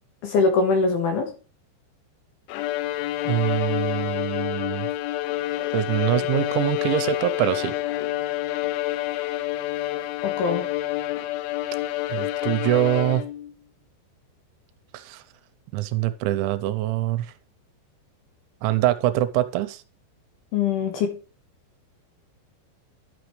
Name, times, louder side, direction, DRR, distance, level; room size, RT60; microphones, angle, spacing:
voice 1, 0.2-1.3 10.2-10.6 20.5-21.1, left 4 dB, 65° left, 5 dB, 2.6 m, -22 dB
Bowed string instrument, 2.5-13.5, left 15 dB, 85° left, 3.1 m, -28 dB
voice 2, 3.2-4.9 5.7-7.8 12.1-13.2 14.9-15.2 15.7-17.3 18.6-19.8, right 14 dB, 85° right, 12 dB, 2.9 m, -24 dB
12.0 x 6.1 x 3.1 m, 0.34 s
omnidirectional pair, 5.5 m